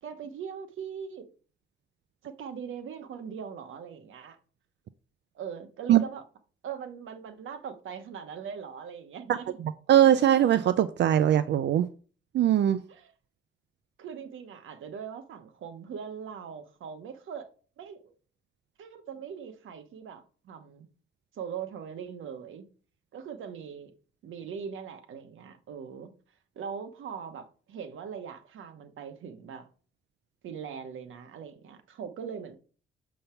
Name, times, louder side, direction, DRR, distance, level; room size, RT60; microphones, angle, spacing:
voice 1, 0.0-1.3 2.2-4.4 5.3-6.2 6.6-9.6 12.9-13.1 14.0-17.5 17.8-18.1 18.8-20.9 21.3-22.6 23.1-23.9 24.2-26.1 26.5-29.7 30.4-32.6, right 7 dB, 85° right, 1.0 m, -41 dB
voice 2, 9.9-11.9 12.3-12.8, right 11 dB, 60° right, 0.4 m, -21 dB
6.8 x 5.5 x 4.4 m
wide cardioid pair, 140°, 20 cm